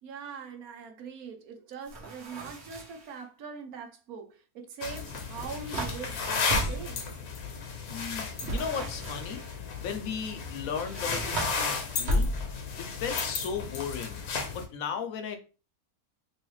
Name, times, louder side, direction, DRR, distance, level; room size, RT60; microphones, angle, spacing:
voice 1, 0.0-7.0, right 5 dB, 75° right, 1.2 m, -42 dB
sound 1, 1.9-3.1 5.1-7.0 8.4-9.5 10.7-12.7, equal, 50° right, 1.1 m, -34 dB
sound 2, 4.8-14.7, left 5 dB, 90° left, 1.3 m, -34 dB
voice 2, 7.9-9.4 9.8-12.3 12.8-14.2 14.5-15.4, left 6 dB, 70° left, 1.0 m, -36 dB
3.2 x 3.1 x 3.1 m
omnidirectional pair, 1.6 m